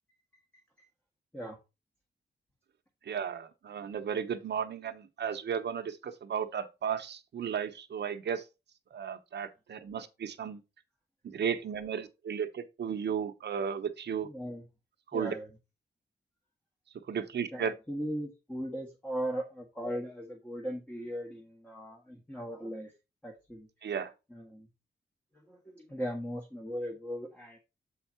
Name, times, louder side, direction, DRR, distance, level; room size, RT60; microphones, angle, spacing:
voice 1, 3.1-8.4 8.9-10.6 11.2-14.3 15.1-15.3 17.1-17.7 23.8-24.1, right 7 dB, 80° right, 0.9 m, -34 dB
voice 2, 14.2-14.6 15.1-15.5 17.5-22.9 23.2-23.7 24.3-24.7 25.3-27.6, equal, 10° left, 1.5 m, -38 dB
7.5 x 4.6 x 4.3 m
wide cardioid pair, 135°, 17 cm